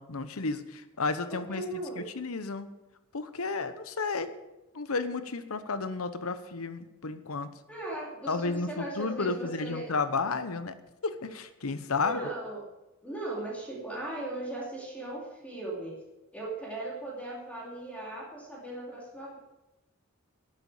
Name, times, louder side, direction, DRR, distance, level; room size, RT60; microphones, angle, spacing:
voice 1, 0.0-2.7 3.1-4.3 4.7-7.5 8.3-10.7 11.0-12.2, left 4 dB, 85° left, 11 dB, 1.0 m, -32 dB
voice 2, 1.3-2.0 7.7-9.9 12.0-12.6 13.0-16.0 16.3-19.4, right 1 dB, 5° left, -4 dB, 2.7 m, -38 dB
12.0 x 8.2 x 7.2 m, 1.0 s
head